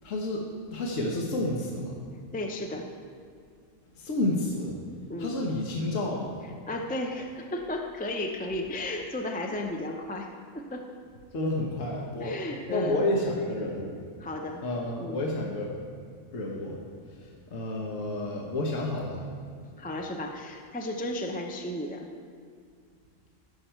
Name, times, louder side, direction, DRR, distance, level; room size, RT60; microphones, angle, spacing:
voice 1, 0.0-1.9 4.0-4.8 5.2-6.3 11.3-12.4 12.7-13.9 14.6-15.8 16.3-16.8 17.1-19.2, left 1 dB, 70° left, -1 dB, 1.4 m, -30 dB
voice 2, 2.3-2.9 5.1-5.4 6.7-10.3 10.5-10.9 12.2-13.1 14.2-14.6 15.0-15.2 19.8-22.1, left 1 dB, 10° left, 2 dB, 0.4 m, -34 dB
15.0 x 7.1 x 4.5 m, 2.1 s
omnidirectional pair, 1.4 m